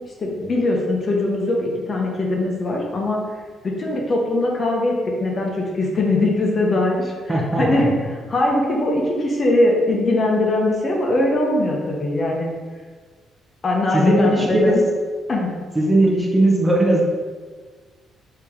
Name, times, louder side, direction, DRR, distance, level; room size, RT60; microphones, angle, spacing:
voice 1, 0.2-3.2 3.6-7.1 7.6-7.9 8.3-12.5 13.6-14.8 15.3-15.5, left 2 dB, 40° left, -1 dB, 0.7 m, -21 dB
voice 2, 7.3-7.9 13.9-14.8 15.7-17.0, right 1 dB, 15° right, -2 dB, 0.7 m, -18 dB
3.3 x 2.8 x 3.5 m, 1.5 s
cardioid pair, 90°, 0 cm